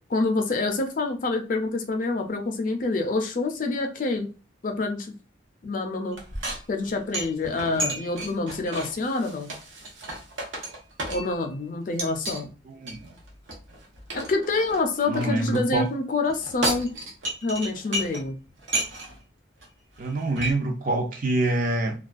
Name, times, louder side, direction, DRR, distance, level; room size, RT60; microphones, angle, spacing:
voice 1, 0.1-4.3 4.6-5.1 5.6-6.2 6.7-9.5 11.1-12.5 14.1-16.9 17.4-18.4, left 3 dB, 45° left, 4 dB, 0.4 m, -27 dB
sound 1, 6.1-11.5 12.0-12.4 12.9-15.6 16.3-18.3 18.6-19.2 19.6-19.7 20.0-20.5, right 1 dB, 85° right, 0.8 m, -33 dB
voice 2, 12.7-13.1 15.1-15.9 20.0-21.9, right 2 dB, 45° right, 3 dB, 0.5 m, -26 dB
2.3 x 2.2 x 2.4 m, 0.35 s
head